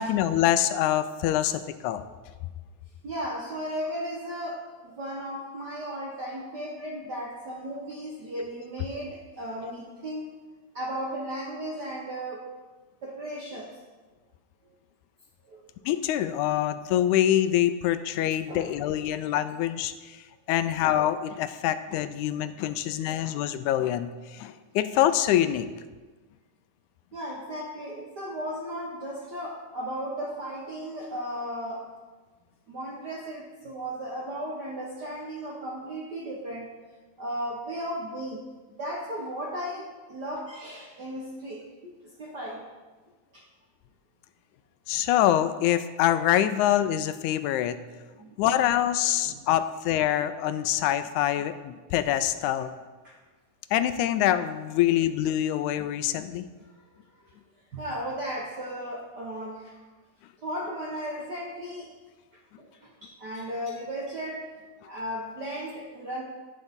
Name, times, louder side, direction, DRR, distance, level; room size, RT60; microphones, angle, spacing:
voice 1, 0.0-2.0 15.9-25.7 44.9-47.8 48.4-52.7 53.7-56.5, left 12 dB, 85° left, 12 dB, 1.9 m, -25 dB
voice 2, 3.0-10.4 10.7-12.5 13.0-13.7 15.5-15.6 18.5-18.7 23.1-23.2 27.1-31.8 32.7-36.7 37.2-38.4 38.8-41.9 42.2-42.6 43.3-43.4 48.2-48.4 49.2-49.4 53.0-53.2 57.7-59.7 60.4-61.9 62.6-62.7 63.0-64.4 64.8-66.2, equal, 60° right, -3 dB, 1.1 m, -35 dB
11.5 x 9.9 x 3.6 m, 1.3 s
omnidirectional pair, 3.5 m